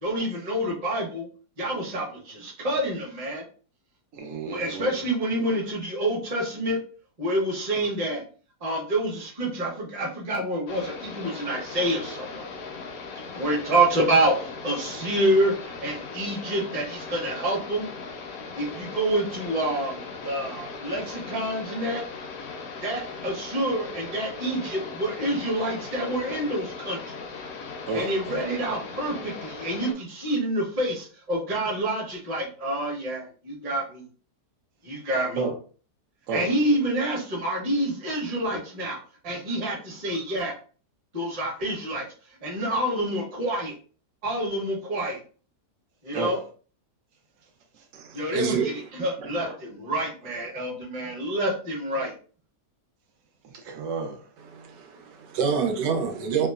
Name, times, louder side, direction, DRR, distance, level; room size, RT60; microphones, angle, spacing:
voice 1, 0.0-1.3 1.6-3.4 4.5-6.8 7.2-8.2 8.6-12.5 13.3-17.9 18.5-22.0 22.8-27.0 27.9-34.0 34.8-35.5 36.3-39.0 39.2-40.5 41.1-42.0 42.4-43.7 44.2-45.2 46.0-46.4 48.1-52.1, right 1 dB, 30° right, 0.7 m, -27 dB
voice 2, 4.1-5.0 27.9-28.5 35.4-35.6 36.3-36.5 46.1-46.4 47.7-47.8 49.2-49.6 53.4-54.3, right 3 dB, 70° right, 0.8 m, -32 dB
sound 1, 10.7-29.9, left 4 dB, 70° left, 0.7 m, -38 dB
voice 3, 47.9-48.7 54.5-56.5, right 6 dB, 85° right, 1.2 m, -27 dB
3.0 x 2.0 x 2.3 m
omnidirectional pair, 1.8 m